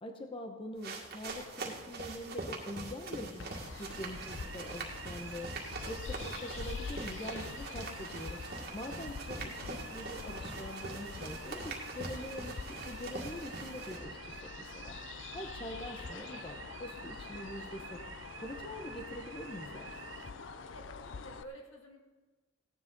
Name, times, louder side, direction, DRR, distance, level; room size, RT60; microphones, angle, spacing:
voice 1, 0.0-3.5 3.8-5.5 5.9-8.4 8.7-15.0 15.3-18.0 18.4-19.9, left 1 dB, 25° left, 4 dB, 0.9 m, -44 dB
sound 1, 0.8-14.0, right 3 dB, 50° right, 2.0 m, -43 dB
sound 2, 3.4-21.4, left 5 dB, 65° left, 0.5 m, -46 dB
sound 3, 3.9-20.3, right 7 dB, 70° right, 0.8 m, -49 dB
voice 2, 20.3-22.0, equal, 90° left, 0 dB, 2.4 m, -51 dB
16.5 x 10.5 x 4.0 m, 1.2 s
head